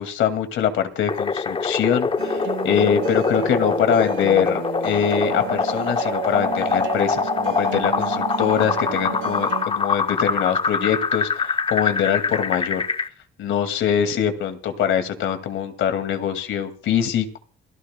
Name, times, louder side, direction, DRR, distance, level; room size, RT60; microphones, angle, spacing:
voice 1, 0.0-12.8 13.4-17.4, left 8 dB, 80° left, 8 dB, 2.1 m, -23 dB
sound 1, 1.1-13.1, left 5 dB, 25° left, 0.7 m, -24 dB
sound 2, 2.2-9.7, right 10 dB, 75° right, 1.4 m, -31 dB
27.5 x 14.0 x 2.2 m, 0.43 s
cardioid pair, 90°, 20 cm